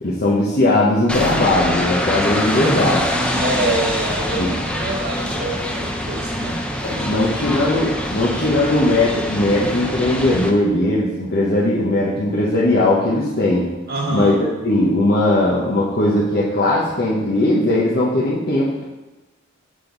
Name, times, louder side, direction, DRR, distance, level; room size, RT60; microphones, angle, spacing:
voice 1, 0.0-3.0 4.4-4.5 6.8-13.7 14.1-18.8, left 1 dB, 50° left, -6 dB, 1.0 m, -18 dB
sound 1, 1.1-10.5, equal, 5° left, 0.6 m, -24 dB
voice 2, 2.6-6.6 6.9-7.6 13.9-14.3, right 1 dB, 50° right, -5 dB, 1.3 m, -26 dB
7.0 x 6.7 x 3.9 m, 1.1 s
head